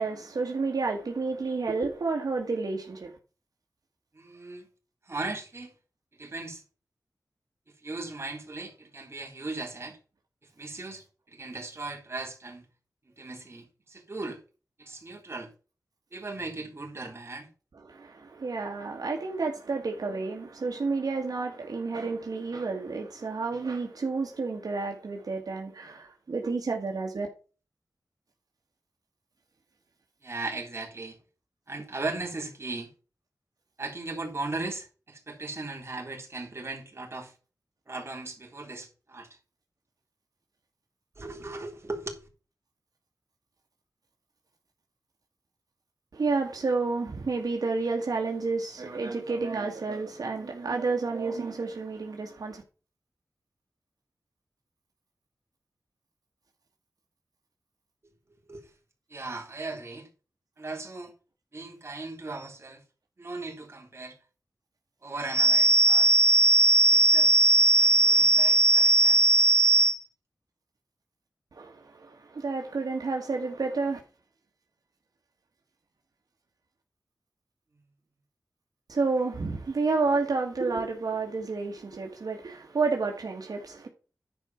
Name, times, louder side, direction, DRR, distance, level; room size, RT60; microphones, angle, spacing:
voice 1, 0.0-3.2 17.7-27.3 46.1-52.6 71.5-74.0 78.9-83.9, right 4 dB, 75° right, 1.8 m, -30 dB
voice 2, 4.2-4.7 5.1-5.7 6.2-6.6 7.8-10.0 10.6-11.0 11.3-12.6 13.2-14.4 14.8-15.5 16.1-17.5 30.2-31.2 31.7-32.9 33.8-37.3 37.9-39.3 41.2-42.2 58.5-58.6 59.1-60.1 60.6-61.1 61.5-62.8 63.2-64.2 65.0-70.1, right 3 dB, 40° right, 3.5 m, -26 dB
10.5 x 5.0 x 5.8 m
wide cardioid pair, 95°, 7 cm